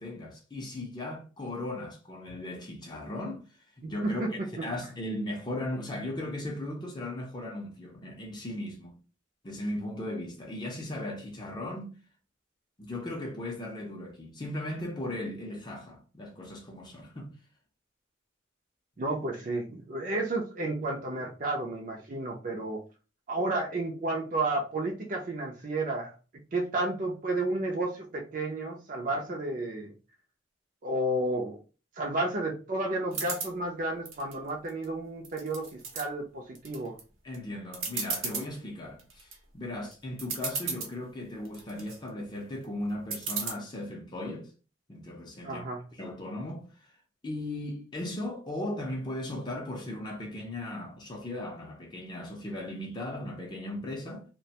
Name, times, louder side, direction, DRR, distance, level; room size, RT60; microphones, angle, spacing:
voice 1, 0.0-3.4 3.8-9.0 9.4-11.9 12.8-17.3 37.2-44.5 44.9-45.6 45.9-46.9 47.2-54.2, left 1 dB, 20° left, 0.5 m, -37 dB
voice 2, 3.8-4.6 19.0-22.8 23.3-26.1 26.5-29.9 30.8-31.6 32.0-35.7 35.9-36.9 45.4-45.8, right 2 dB, 40° right, 0.4 m, -32 dB
sound 1, 33.1-33.5 34.1-34.8 35.2-36.0 36.6-37.0 37.3-37.4 37.7-38.5 39.0-39.3 39.9-40.0 40.2-40.9 41.5-42.0 43.1-43.5, right 5 dB, 85° right, 0.8 m, -34 dB
2.4 x 2.1 x 2.7 m
head